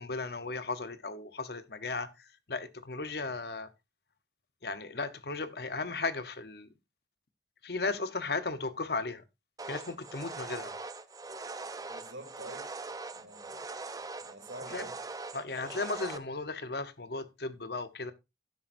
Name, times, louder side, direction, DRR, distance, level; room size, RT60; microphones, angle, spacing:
voice 1, 0.0-3.7 4.6-6.7 7.6-9.2 9.7-10.7 14.7-14.9 15.3-18.1, left 3 dB, 55° left, 1.0 m, -36 dB
sound 1, 9.6-16.2, right 3 dB, 20° right, 0.6 m, -42 dB
voice 2, 11.9-12.7 13.1-13.6 14.2-15.0, right 2 dB, 85° right, 3.1 m, -47 dB
12.0 x 10.5 x 2.6 m
head